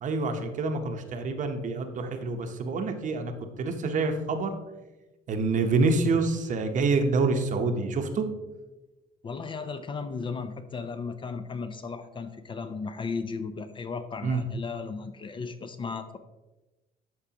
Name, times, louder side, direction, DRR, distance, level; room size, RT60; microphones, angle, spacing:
voice 1, 0.0-3.3 3.6-4.5 5.3-8.2 14.2-14.4, right 3 dB, 50° right, 6 dB, 0.9 m, -27 dB
voice 2, 9.2-16.2, left 4 dB, 30° left, 10 dB, 0.5 m, -35 dB
12.0 x 4.8 x 2.9 m, 1.1 s
cardioid pair, 110°, 17 cm